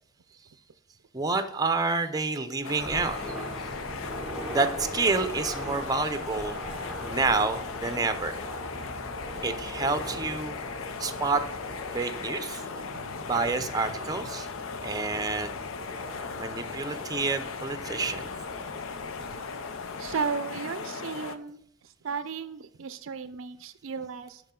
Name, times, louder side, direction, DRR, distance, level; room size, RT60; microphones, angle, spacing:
voice 1, 1.1-3.2 4.5-6.6 7.0-8.4 9.4-10.6 11.0-11.4 11.9-12.6 13.2-14.5 14.8-15.6 16.4-18.3, right 3 dB, 20° right, 9 dB, 0.6 m, -28 dB
sound 1, 2.6-21.4, left 5 dB, 75° left, 0.6 m, -37 dB
sound 2, 2.8-20.3, right 1 dB, ahead, 1.1 m, -42 dB
voice 2, 3.6-4.3 6.8-6.9 10.8-10.9 12.9-14.0 14.6-14.8 15.7-15.8 16.4-16.8 18.1-18.2 19.2-19.3 20.0-24.4, right 5 dB, 70° right, 13 dB, 0.5 m, -37 dB
11.5 x 4.8 x 3.7 m, 0.72 s
head